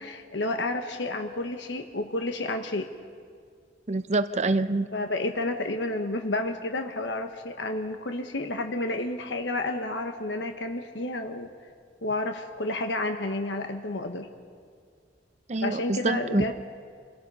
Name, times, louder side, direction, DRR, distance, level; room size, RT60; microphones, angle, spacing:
voice 1, 0.0-2.9 4.9-11.5 12.0-14.3 15.6-16.5, left 2 dB, 85° left, 5 dB, 1.2 m, -30 dB
voice 2, 3.9-4.9 15.5-16.5, right 2 dB, 40° right, 12 dB, 0.6 m, -26 dB
27.0 x 18.0 x 5.5 m, 2.1 s
head